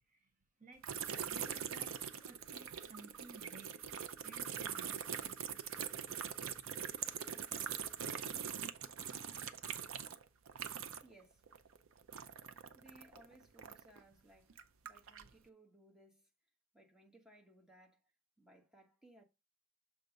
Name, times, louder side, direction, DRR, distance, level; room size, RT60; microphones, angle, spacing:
voice 1, 0.6-6.6, right 3 dB, 35° right, 0.8 m, -59 dB
sound 1, 0.8-11.2 11.5-14.0 14.5-15.3, right 8 dB, 65° right, 0.6 m, -43 dB
voice 2, 11.0-11.4 12.7-16.3 16.7-18.0 18.4-19.2, right 1 dB, 5° right, 1.1 m, -63 dB
6.8 x 3.6 x 5.2 m
head